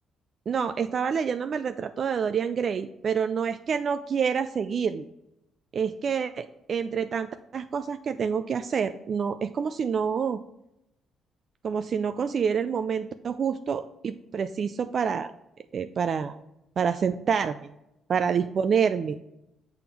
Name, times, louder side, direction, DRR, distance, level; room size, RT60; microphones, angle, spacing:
voice 1, 0.5-5.1 5.7-10.4 11.6-15.3 15.7-16.4 16.8-17.7 18.1-19.2, right 6 dB, 50° right, 10 dB, 0.3 m, -27 dB
6.7 x 3.6 x 5.9 m, 0.87 s
cardioid pair, 90°, 0 cm